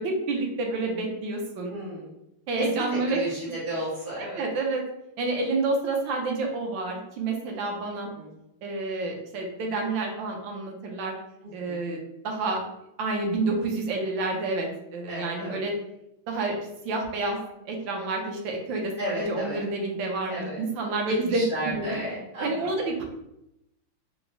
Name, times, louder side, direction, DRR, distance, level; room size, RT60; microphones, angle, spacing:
voice 1, 0.0-1.7 2.5-3.2 4.4-4.8 5.2-8.1 8.6-11.1 11.5-12.0 12.2-12.6 13.0-15.7 16.3-21.9 22.4-23.0, right 3 dB, 70° right, 1 dB, 1.2 m, -29 dB
voice 2, 1.7-2.1 2.6-4.4 8.2-8.3 11.4-11.8 15.1-15.6 19.0-19.6 20.3-20.6 21.1-22.7, right 1 dB, 35° right, -9 dB, 1.1 m, -33 dB
4.5 x 2.0 x 2.6 m, 0.85 s
omnidirectional pair, 2.4 m